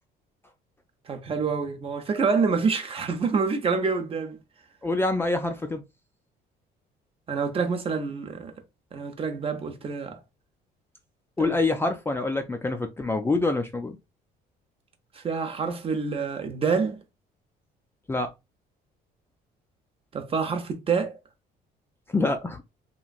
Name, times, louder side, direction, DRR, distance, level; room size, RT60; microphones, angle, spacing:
voice 1, 1.1-4.4 7.3-8.5 8.9-10.2 11.4-11.6 15.2-17.0 20.1-21.1, right 5 dB, 35° right, 0.6 m, -27 dB
voice 2, 4.8-5.8 11.4-14.0 18.1-18.3 22.1-22.6, left 2 dB, 15° left, 0.4 m, -26 dB
3.0 x 2.5 x 2.3 m
cardioid pair, 110°, 17 cm